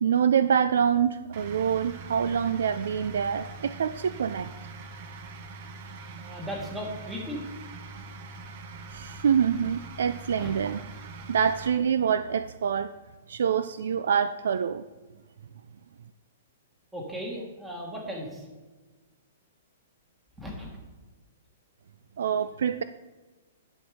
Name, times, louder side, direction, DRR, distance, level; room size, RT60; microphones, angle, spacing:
voice 1, 0.0-4.5 8.9-10.8 11.3-12.9 13.3-14.8 22.2-22.8, right 7 dB, 80° right, 13 dB, 0.3 m, -25 dB
sound 1, 1.3-11.7, right 3 dB, 45° right, 0.8 m, -43 dB
voice 2, 6.0-7.4 10.4-10.6 16.9-18.5 20.4-20.8, equal, 5° right, -1 dB, 1.4 m, -37 dB
11.5 x 4.4 x 5.0 m, 1.3 s
hypercardioid pair, 165°, 0 cm